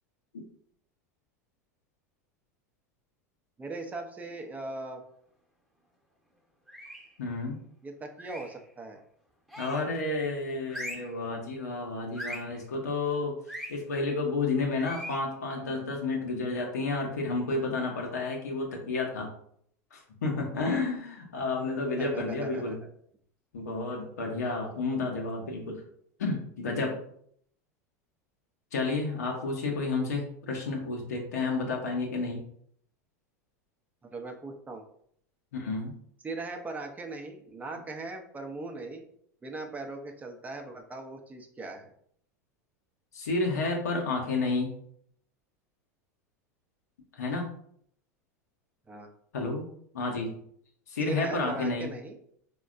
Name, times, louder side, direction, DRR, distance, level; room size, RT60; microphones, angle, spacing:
voice 1, 3.6-5.0 7.8-9.0 22.0-22.7 34.1-34.8 36.2-39.0 39.4-41.9 48.9-49.1 51.0-52.2, right 3 dB, 15° right, 3 dB, 0.5 m, -39 dB
sound 1, 6.7-7.1 8.2-8.6 9.5-10.0 10.7-11.2 12.1-12.5 13.5-13.7 14.8-15.3, equal, ahead, 1.0 m, -40 dB
voice 2, 7.2-7.6 9.6-13.4 13.7-19.3 19.9-22.8 23.5-25.8 26.2-27.0 28.7-32.4 35.5-35.9 43.1-44.7 47.1-47.5 49.3-49.7 49.9-50.4 50.9-51.9, left 3 dB, 80° left, 0 dB, 0.7 m, -31 dB
4.1 x 2.2 x 2.4 m, 0.66 s
hypercardioid pair, 90°, 9 cm